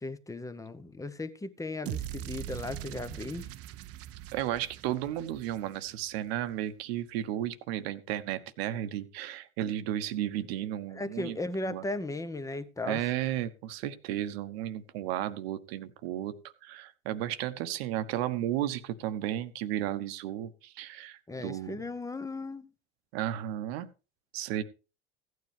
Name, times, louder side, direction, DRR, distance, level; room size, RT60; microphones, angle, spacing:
voice 1, 0.0-3.5 10.9-13.0 21.3-22.7, left 2 dB, 10° left, 0.9 m, -36 dB
sound 1, 1.9-6.1, right 13 dB, 45° right, 0.7 m, -41 dB
voice 2, 4.3-11.4 11.6-11.8 12.8-16.4 16.6-21.8 23.1-23.9 24.3-24.6, right 12 dB, 70° right, 1.1 m, -33 dB
15.5 x 9.4 x 3.4 m
hypercardioid pair, 85°, 32 cm